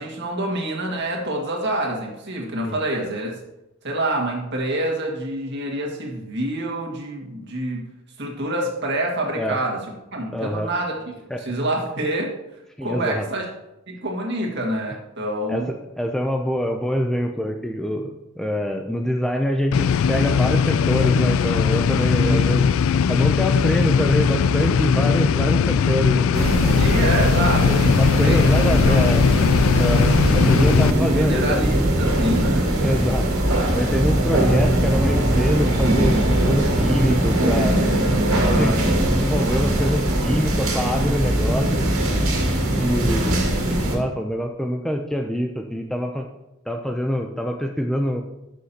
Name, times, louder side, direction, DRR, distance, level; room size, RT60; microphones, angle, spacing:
voice 1, 0.0-3.3 3.8-7.8 8.2-9.8 10.1-10.9 11.4-12.3 12.8-13.4 13.9-15.7 22.2-22.5 26.4-29.2 30.8-32.7 33.3-33.5 38.4-38.8, right 1 dB, 55° right, -1 dB, 1.8 m, -27 dB
voice 2, 10.3-10.7 11.3-11.4 12.8-13.3 15.5-15.6 16.0-22.7 23.1-26.5 27.9-29.2 29.8-31.6 32.8-33.3 33.7-37.9 38.5-41.9 42.8-46.3 46.7-48.2, equal, ahead, 3 dB, 0.4 m, -25 dB
sound 1, 19.7-30.9, left 6 dB, 70° left, 0.3 m, -19 dB
sound 2, 26.3-44.0, right 1 dB, 85° right, 2.1 m, -20 dB
12.5 x 6.4 x 2.8 m, 0.91 s
head